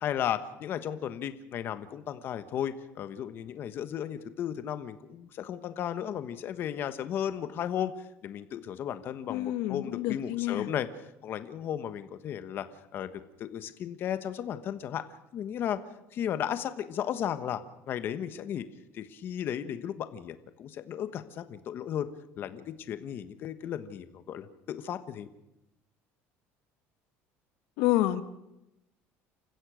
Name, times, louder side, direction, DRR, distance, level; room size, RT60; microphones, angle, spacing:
voice 1, 0.0-10.9 11.2-12.7 12.9-15.0 15.3-15.8 16.1-17.6 17.9-18.7 18.9-22.1 22.4-25.3, left 9 dB, 45° left, 11 dB, 1.2 m, -35 dB
voice 2, 9.3-10.7 27.8-28.2, left 15 dB, 85° left, 11 dB, 1.1 m, -28 dB
29.0 x 15.5 x 6.4 m, 0.89 s
cardioid pair, 150°, 5 cm